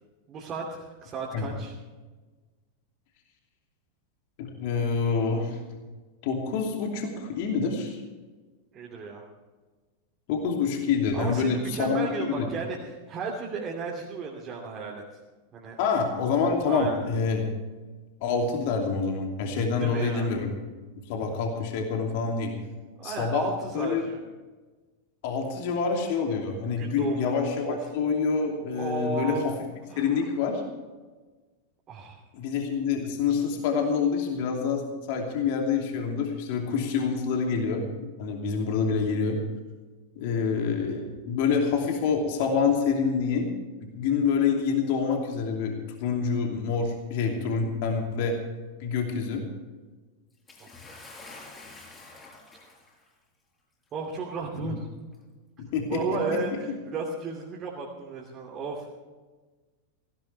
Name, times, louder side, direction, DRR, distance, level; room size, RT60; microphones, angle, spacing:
voice 1, 0.3-1.7 8.7-9.2 11.1-15.0 15.5-15.8 16.7-17.0 19.8-20.3 23.0-24.2 26.8-27.3 27.6-27.8 28.7-29.5 29.9-30.2 31.9-32.2 50.6-50.7 53.9-54.9 55.9-58.9, right 4 dB, 30° right, -3 dB, 2.8 m, -34 dB
voice 2, 4.4-5.6 6.2-8.0 10.3-12.5 15.8-17.4 18.2-20.5 21.1-22.5 23.0-24.0 25.2-29.4 30.0-30.6 32.3-34.8 35.1-39.4 40.2-43.5 43.8-48.4 48.8-49.4 54.6-54.8 55.6-56.0, left 5 dB, 50° left, 2 dB, 2.8 m, -27 dB
Bathtub (filling or washing) / Splash splatter, 50.5-53.1 54.0-54.1 55.1-55.2, left 3 dB, 20° left, 5.8 m, -47 dB
18.0 x 17.0 x 3.4 m, 1.3 s
figure-of-eight pair, 90°, 0 cm